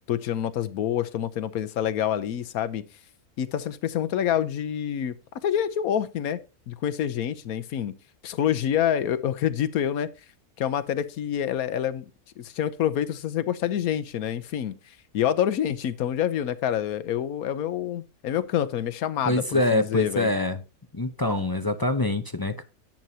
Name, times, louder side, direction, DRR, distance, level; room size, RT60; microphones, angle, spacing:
voice 1, 0.0-2.8 3.4-5.2 5.4-6.4 6.7-7.9 8.2-10.1 10.6-12.0 12.4-14.7 15.1-20.3, left 10 dB, 85° left, 1.2 m, -27 dB
voice 2, 19.3-20.6 20.9-22.6, left 2 dB, 25° left, 0.5 m, -25 dB
10.5 x 9.1 x 2.8 m
omnidirectional pair, 1.5 m